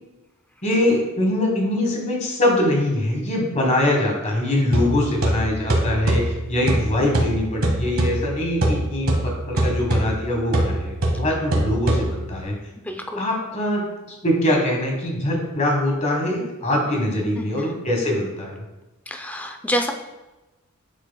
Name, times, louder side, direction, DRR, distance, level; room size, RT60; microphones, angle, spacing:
voice 1, 0.6-12.5 13.1-13.8 14.2-18.6, left 1 dB, 35° left, 0 dB, 1.4 m, -23 dB
sound 1, 4.7-12.4, right 1 dB, 75° right, 1.3 m, -24 dB
voice 2, 9.5-10.1 12.8-13.3 17.4-17.8 19.1-19.9, equal, 5° left, 4 dB, 0.5 m, -29 dB
10.5 x 4.7 x 2.3 m, 1.1 s
head